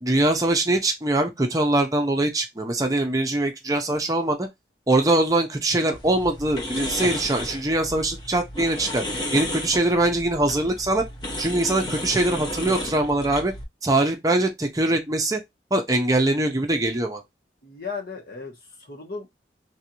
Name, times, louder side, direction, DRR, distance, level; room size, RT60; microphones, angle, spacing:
voice 1, 0.0-4.5 4.9-9.0 9.3-11.0 11.4-13.5 13.8-15.4 15.7-17.2, right 2 dB, 20° right, 0.6 m, -22 dB
sound 1, 5.9-13.6, left 1 dB, 25° left, 0.7 m, -33 dB
voice 2, 17.6-19.3, left 4 dB, 60° left, 1.3 m, -36 dB
3.3 x 2.6 x 2.8 m
head